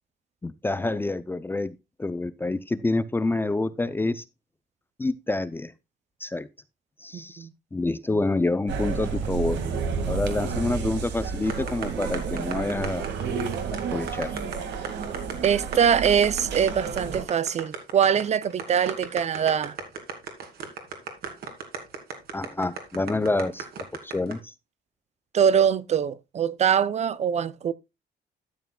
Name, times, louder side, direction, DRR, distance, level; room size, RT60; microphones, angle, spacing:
voice 1, 0.4-4.2 5.0-5.7 6.2-6.5 7.0-9.6 10.1-13.1 13.7-14.3 22.3-23.7 24.0-24.5, left 2 dB, 10° left, 0.4 m, -27 dB
voice 2, 7.1-7.5 15.4-19.8 25.3-27.7, right 8 dB, 40° right, 0.5 m, -23 dB
sound 1, 8.7-17.2, right 6 dB, 75° right, 2.0 m, -31 dB
sound 2, 11.5-24.3, right 6 dB, 60° right, 2.5 m, -35 dB
12.5 x 8.2 x 2.3 m
cardioid pair, 150°, 18 cm